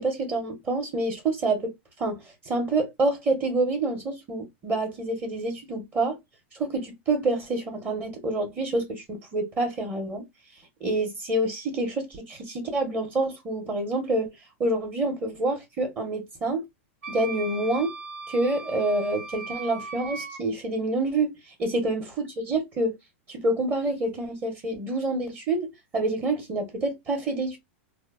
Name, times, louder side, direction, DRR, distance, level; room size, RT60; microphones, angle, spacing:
voice 1, 0.0-1.7 2.0-6.2 6.5-10.2 10.8-14.3 14.6-16.6 17.1-17.9 18.3-23.0 23.3-27.6, right 2 dB, 25° right, 0.8 m, -27 dB
Wind instrument woodwind instrument, 17.0-20.4, right 3 dB, 85° right, 1.2 m, -38 dB
2.8 x 2.0 x 2.4 m
hypercardioid pair, 130°, 7 cm